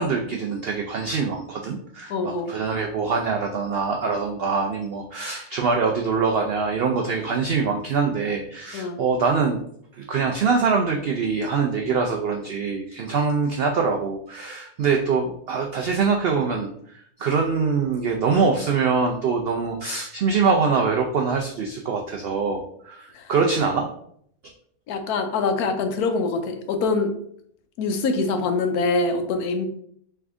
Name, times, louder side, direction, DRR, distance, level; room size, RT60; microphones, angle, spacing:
voice 1, 0.0-9.6 9.9-23.9, right 5 dB, 80° right, 2 dB, 0.5 m, -24 dB
voice 2, 2.1-2.5 8.7-9.0 23.1-23.3 24.9-27.1 27.8-29.7, left 3 dB, 90° left, 6 dB, 1.1 m, -24 dB
3.5 x 3.2 x 3.5 m, 0.66 s
omnidirectional pair, 1.6 m